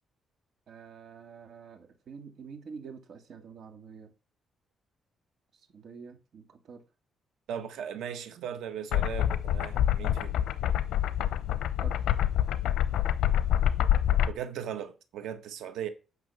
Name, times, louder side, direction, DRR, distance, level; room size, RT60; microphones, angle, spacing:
voice 1, 0.7-4.1 5.5-6.8 11.8-12.1, right 6 dB, 55° right, 2.1 m, -47 dB
voice 2, 7.5-10.4 14.3-15.9, right 9 dB, 90° right, 1.5 m, -38 dB
sound 1, 8.9-14.3, left 11 dB, 85° left, 0.7 m, -26 dB
8.7 x 6.0 x 5.7 m
cardioid pair, 120°, 0 cm